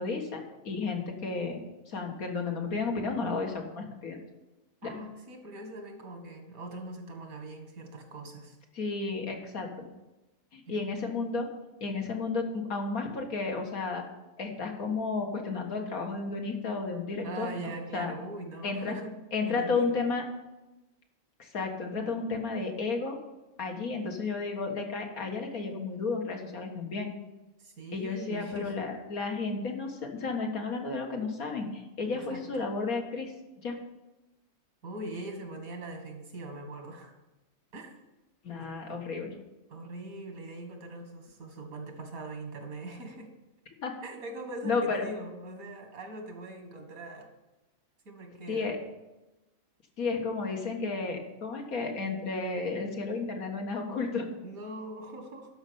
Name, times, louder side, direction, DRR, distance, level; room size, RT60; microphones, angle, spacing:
voice 1, 0.0-1.6 1.9-4.2 4.8-4.9 8.8-9.7 10.5-11.5 11.8-14.0 14.4-18.1 18.6-19.0 19.3-20.2 21.4-23.2 23.6-27.1 27.9-33.8 38.4-39.3 43.8-43.9 44.6-45.1 48.5-48.8 50.0-54.4, left 4 dB, 80° left, 2 dB, 2.0 m, -32 dB
voice 2, 4.8-8.6 10.8-10.9 17.2-19.1 19.4-20.0 27.6-28.9 32.3-32.7 34.8-37.1 37.7-37.9 38.5-38.9 39.7-43.3 44.0-47.3 48.1-48.7 54.4-55.5, right 2 dB, 85° right, 3 dB, 2.2 m, -41 dB
12.0 x 5.5 x 6.9 m, 1.0 s
omnidirectional pair, 1.5 m